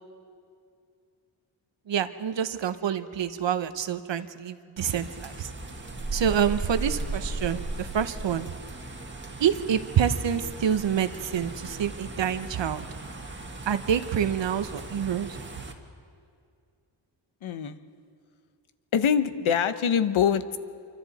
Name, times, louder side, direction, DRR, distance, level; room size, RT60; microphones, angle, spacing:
voice 1, 1.9-5.5 6.1-8.5 9.4-12.9 13.7-15.4, right 8 dB, 65° right, 11 dB, 0.9 m, -27 dB
sound 1, 4.8-15.7, right 2 dB, 25° right, 1.6 m, -37 dB
voice 2, 17.4-17.8 18.9-20.6, left 7 dB, 80° left, 11 dB, 1.0 m, -24 dB
26.5 x 24.5 x 4.2 m, 2.3 s
wide cardioid pair, 140°, 48 cm